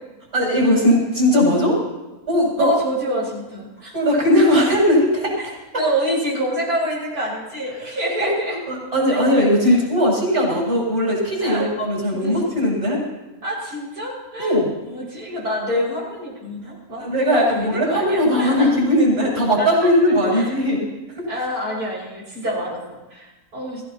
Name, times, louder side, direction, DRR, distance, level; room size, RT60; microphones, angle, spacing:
voice 1, 0.3-1.8 2.3-2.8 3.9-5.5 7.8-7.9 8.2-8.3 8.7-13.0 14.4-14.7 17.0-20.8 21.2-21.3, equal, 40° right, -3 dB, 7.8 m, -18 dB
voice 2, 2.6-3.9 5.8-8.6 9.1-9.2 11.4-11.7 12.1-12.5 13.4-14.5 14.8-18.7 19.6-20.5 21.3-22.8 23.1-23.8, equal, 85° right, -5 dB, 6.9 m, -27 dB
25.5 x 16.0 x 3.1 m, 1.1 s
omnidirectional pair, 1.6 m